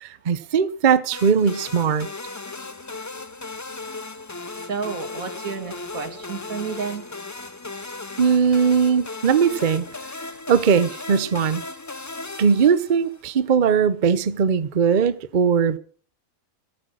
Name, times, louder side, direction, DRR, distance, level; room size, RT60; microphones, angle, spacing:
voice 1, 0.0-2.1 8.2-9.8 10.5-11.6 12.4-15.8, right 6 dB, 45° right, 0.8 m, -19 dB
sound 1, 1.1-13.3, left 3 dB, 25° left, 0.3 m, -36 dB
voice 2, 4.5-7.0, right 5 dB, 75° right, 2.3 m, -31 dB
13.5 x 12.5 x 6.3 m
omnidirectional pair, 1.5 m